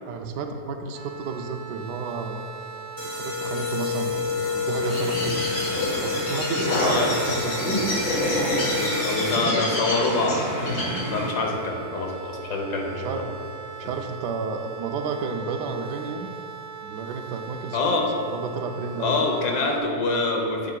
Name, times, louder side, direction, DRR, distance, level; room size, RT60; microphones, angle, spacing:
voice 1, 0.1-2.5 3.0-5.5 5.8-7.8 12.9-13.4 13.8-16.3 16.8-17.8 18.3-19.3, right 5 dB, 85° right, 5 dB, 1.2 m, -32 dB
sound 1, 0.9-19.8, right 7 dB, 65° right, 1.2 m, -40 dB
sound 2, 3.0-9.7, left 5 dB, 25° left, 0.5 m, -30 dB
Bird, 4.8-11.4, left 1 dB, 65° left, 2.3 m, -27 dB
voice 2, 6.8-7.2 8.7-13.2 17.7-18.1 19.0-20.7, left 3 dB, 85° left, 1 dB, 1.5 m, -26 dB
8.3 x 7.6 x 2.3 m, 2.4 s
omnidirectional pair, 1.7 m